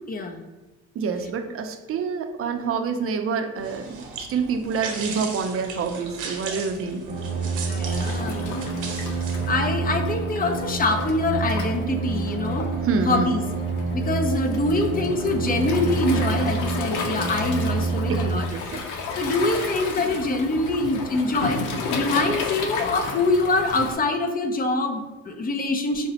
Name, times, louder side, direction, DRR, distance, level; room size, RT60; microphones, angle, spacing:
voice 1, 0.1-0.4 7.6-8.7 9.2-12.7 13.1-13.4 13.9-18.7 19.2-26.1, left 2 dB, 30° left, 6 dB, 0.5 m, -25 dB
voice 2, 0.9-7.0 12.8-13.4 18.1-18.2 18.5-18.8, right 5 dB, 50° right, 7 dB, 0.5 m, -27 dB
sound 1, 3.6-9.8, right 4 dB, 90° right, 0.8 m, -37 dB
sound 2, 7.1-18.4, right 4 dB, 30° right, 0.8 m, -28 dB
Waves surf, 7.9-23.9, left 4 dB, 85° left, 0.5 m, -33 dB
4.9 x 2.0 x 2.8 m, 1.1 s
cardioid pair, 90°, 30 cm